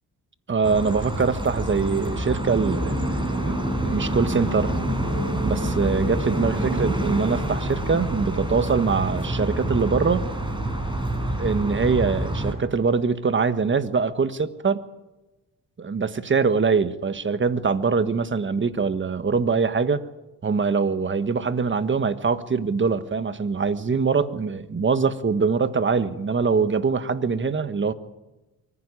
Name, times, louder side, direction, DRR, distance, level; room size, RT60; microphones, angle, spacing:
voice 1, 0.5-3.1 3.4-4.7 5.4-10.3 11.4-14.8 15.8-20.0 20.4-27.9, right 5 dB, 35° right, 12 dB, 1.5 m, -23 dB
sound 1, 0.6-12.5, right 1 dB, 15° right, 5.4 m, -27 dB
24.0 x 15.5 x 9.9 m, 1.1 s
cardioid pair, 75°, 34 cm